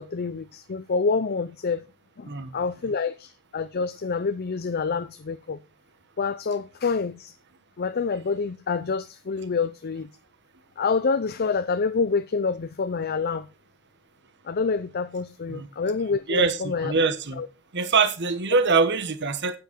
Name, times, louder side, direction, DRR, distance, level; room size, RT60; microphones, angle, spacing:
voice 1, 0.0-1.8 2.2-5.6 6.2-7.4 7.8-10.1 10.8-13.5 14.4-16.9 17.4-17.5, left 4 dB, 45° left, 0.6 m, -27 dB
voice 2, 16.3-17.4 17.7-19.6, right 4 dB, 55° right, 1.2 m, -23 dB
10.5 x 8.9 x 4.5 m
head